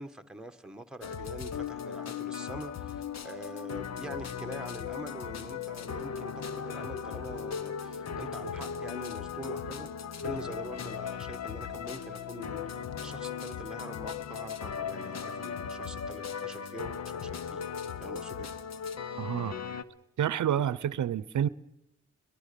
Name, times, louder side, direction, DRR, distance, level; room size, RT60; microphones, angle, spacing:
voice 1, 0.0-9.9 10.2-18.5, right 1 dB, 5° right, 1.3 m, -44 dB
sound 1, 1.0-19.8, left 7 dB, 65° left, 1.0 m, -37 dB
voice 2, 19.2-19.6 20.2-21.5, right 10 dB, 85° right, 0.7 m, -28 dB
22.5 x 21.0 x 6.8 m
wide cardioid pair, 120°, 29 cm